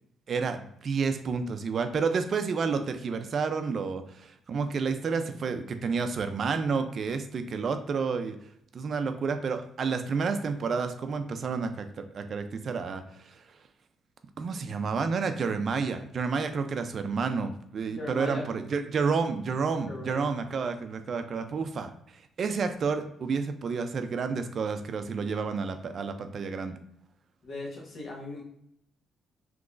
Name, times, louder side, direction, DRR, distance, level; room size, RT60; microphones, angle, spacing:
voice 1, 0.3-8.4 8.7-13.4 14.4-26.7, right 5 dB, 50° right, 8 dB, 0.4 m, -30 dB
voice 2, 17.9-18.5 19.8-20.3 20.5-20.6 27.4-28.4, left 2 dB, 65° left, -3 dB, 1.2 m, -39 dB
3.7 x 3.0 x 2.4 m, 0.73 s
cardioid pair, 90°, 0 cm